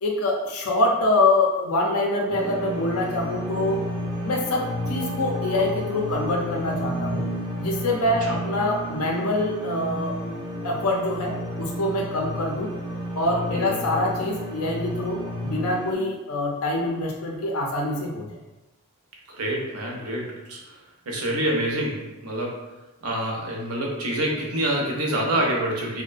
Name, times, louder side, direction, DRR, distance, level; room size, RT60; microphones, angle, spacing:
voice 1, 0.0-3.8 4.2-7.3 7.6-10.4 10.6-12.7 13.2-18.3, left 2 dB, 80° left, 0 dB, 0.5 m, -25 dB
sound 1, 2.3-15.9, equal, 20° right, 0.4 m, -31 dB
voice 2, 13.5-13.8 19.3-20.8 21.1-22.7 23.0-26.0, right 1 dB, 85° right, -1 dB, 0.6 m, -27 dB
2.4 x 2.1 x 2.4 m, 1.0 s
head